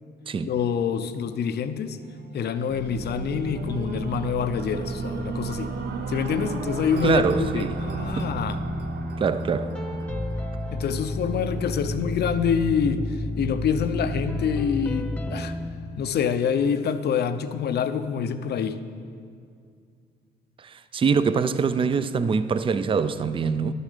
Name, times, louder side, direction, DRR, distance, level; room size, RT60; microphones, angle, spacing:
voice 1, 0.4-2.0 2.3-5.7 6.1-8.6 10.7-15.5 16.0-18.8, left 7 dB, 60° left, 0.6 m, -26 dB
sound 1, 1.8-12.1 12.7-12.8, right 5 dB, 60° right, 0.9 m, -38 dB
sound 2, 2.7-8.9, right 3 dB, 80° right, 1.6 m, -35 dB
voice 2, 7.0-7.8 8.1-8.3 9.2-9.8 20.6-23.7, right 5 dB, 30° right, 0.4 m, -24 dB
sound 3, 7.2-15.7, left 1 dB, 5° left, 0.8 m, -31 dB
11.0 x 6.5 x 6.7 m
cardioid pair, 95°, 18 cm